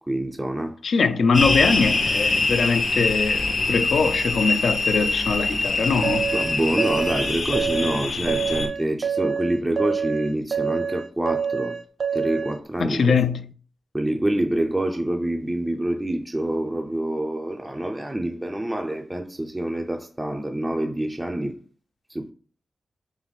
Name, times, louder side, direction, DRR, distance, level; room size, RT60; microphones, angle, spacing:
voice 1, 0.1-0.8 6.3-11.8 12.1-13.2 13.9-21.6 22.1-22.3, right 1 dB, 10° right, 0.3 m, -26 dB
voice 2, 0.8-6.3 12.8-13.5, left 4 dB, 75° left, 0.4 m, -22 dB
sound 1, 1.3-8.7, left 3 dB, 55° left, 0.7 m, -24 dB
sound 2, 6.0-12.6, right 6 dB, 60° right, 0.6 m, -27 dB
4.0 x 3.5 x 3.1 m
wide cardioid pair, 150°, 0 cm